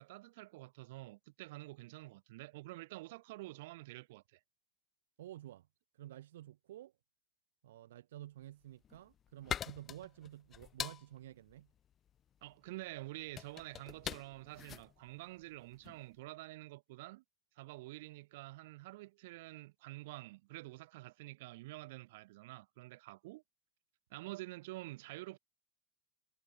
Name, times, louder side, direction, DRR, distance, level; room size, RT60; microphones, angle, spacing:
voice 1, 0.0-4.4 12.4-17.2 17.6-23.4 24.1-25.4, right 20 dB, 70° right, 0.7 m, -48 dB
voice 2, 5.2-5.7 5.9-6.9 7.6-11.7, right 13 dB, 85° right, 1.4 m, -51 dB
sound 1, 8.6-16.0, left 9 dB, 30° left, 0.9 m, -45 dB
supercardioid pair, 130°, 0 cm